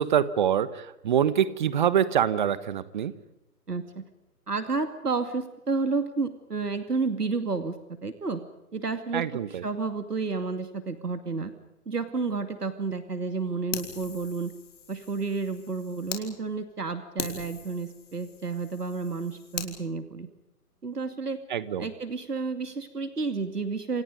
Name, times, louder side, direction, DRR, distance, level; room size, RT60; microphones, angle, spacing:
voice 1, 0.0-3.2 9.1-9.6 21.5-21.9, right 9 dB, 30° right, 16 dB, 1.3 m, -25 dB
voice 2, 3.7-4.0 4.5-7.8 8.0-8.4 8.7-9.2 9.6-11.5 11.9-14.5 14.9-20.3 20.8-21.4 21.8-24.0, right 4 dB, 80° right, 9 dB, 2.5 m, -31 dB
Fire, 13.7-16.2 16.7-16.8 17.2-19.7, left 6 dB, 50° left, 4.7 m, -40 dB
29.5 x 27.5 x 5.3 m, 0.93 s
figure-of-eight pair, 140°, 46 cm